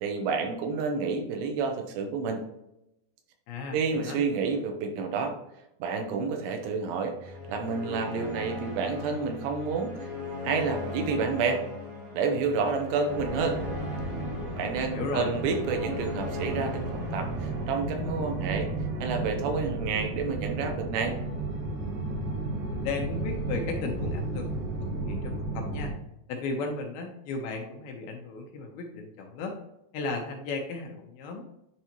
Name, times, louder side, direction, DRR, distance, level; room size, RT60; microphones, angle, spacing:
voice 1, 0.0-2.4 3.7-5.4 5.8-10.1 10.4-11.6 12.1-13.6 14.5-18.7 19.0-21.1, right 5 dB, 85° right, 4 dB, 3.0 m, -29 dB
voice 2, 3.5-3.8 4.0-4.2 14.5-15.3 22.7-24.5 25.1-25.9 26.3-29.6 29.9-31.4, left 3 dB, 75° left, 2 dB, 2.4 m, -35 dB
sound 1, 7.1-18.4, left 3 dB, 30° right, 1.9 m, -38 dB
sound 2, 13.1-25.9, right 2 dB, 65° right, 2.7 m, -33 dB
9.7 x 3.3 x 2.9 m, 0.85 s
omnidirectional pair, 4.9 m